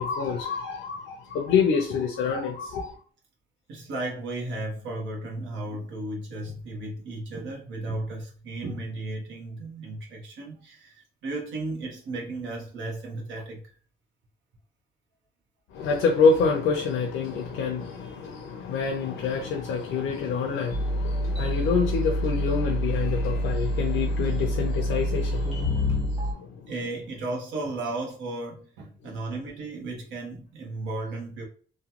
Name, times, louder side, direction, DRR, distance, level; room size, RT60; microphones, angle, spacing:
voice 1, 0.0-2.9 15.7-26.7, left 5 dB, 85° left, 0.6 m, -27 dB
voice 2, 3.7-13.6 26.7-31.5, right 2 dB, 75° right, 1.0 m, -34 dB
sound 1, 20.7-26.3, equal, 30° right, 1.4 m, -27 dB
3.0 x 2.2 x 2.9 m
cardioid pair, 90°, 20 cm